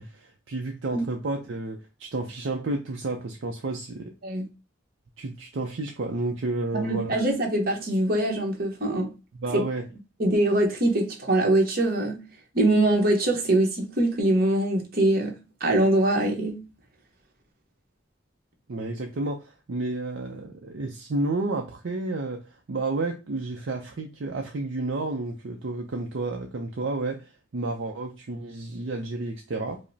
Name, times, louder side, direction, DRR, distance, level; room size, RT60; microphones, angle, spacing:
voice 1, 0.0-4.1 5.2-7.2 9.3-9.9 18.7-29.8, right 2 dB, 60° right, 0.5 m, -31 dB
voice 2, 6.7-9.1 9.5-9.6 10.2-12.2 12.5-16.6, right 1 dB, 45° right, 0.9 m, -23 dB
5.0 x 2.0 x 2.7 m
head